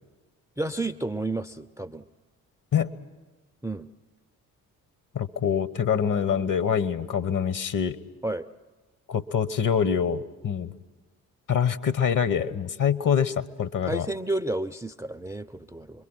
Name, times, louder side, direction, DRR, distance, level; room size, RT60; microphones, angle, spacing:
voice 1, 0.6-2.1 3.6-3.9 8.2-8.5 13.8-16.1, right 2 dB, 5° right, 15 dB, 0.6 m, -31 dB
voice 2, 5.1-8.0 9.1-10.7 11.5-14.1, left 7 dB, 45° left, 16 dB, 1.2 m, -25 dB
26.0 x 22.0 x 6.2 m, 1.3 s
hypercardioid pair, 45°, 44 cm